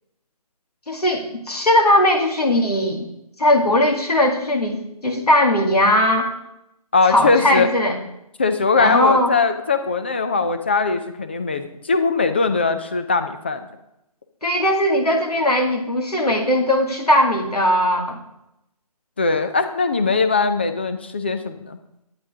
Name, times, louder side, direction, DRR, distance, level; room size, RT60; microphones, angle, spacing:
voice 1, 0.9-3.1 3.4-6.3 7.0-8.0 8.8-9.3 14.4-18.2, left 1 dB, 75° left, 2 dB, 2.2 m, -19 dB
voice 2, 6.9-7.7 8.4-13.7 19.2-21.8, left 4 dB, 15° left, 8 dB, 0.4 m, -20 dB
11.5 x 8.9 x 3.6 m, 0.84 s
figure-of-eight pair, 150°, 20 cm